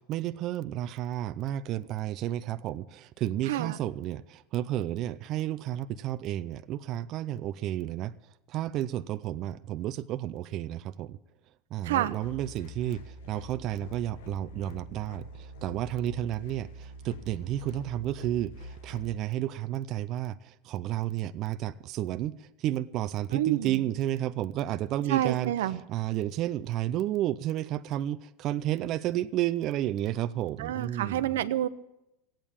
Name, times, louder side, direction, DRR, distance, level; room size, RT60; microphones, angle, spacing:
voice 1, 0.1-11.2 11.7-31.4, right 13 dB, 35° right, 0.4 m, -32 dB
voice 2, 11.8-12.1 23.3-23.8 25.1-25.8 30.6-31.7, right 12 dB, 90° right, 0.7 m, -28 dB
sound 1, 12.2-19.2, equal, 85° left, 1.4 m, -45 dB
16.0 x 8.9 x 8.6 m
supercardioid pair, 160°, 0 cm